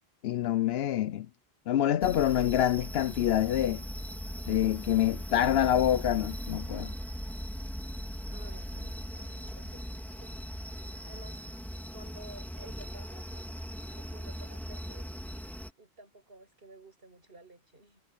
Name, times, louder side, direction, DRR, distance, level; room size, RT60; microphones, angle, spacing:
voice 1, 0.2-1.3 1.7-3.8 4.5-6.9, left 11 dB, 70° left, 0.8 m, -26 dB
sound 1, 2.0-15.7, equal, ahead, 3.3 m, -39 dB
voice 2, 8.3-9.9 10.2-10.7 11.0-11.5 11.9-13.5 13.9-15.3 15.8-18.0, right 2 dB, 60° right, 7.5 m, -53 dB
omnidirectional pair, 1.1 m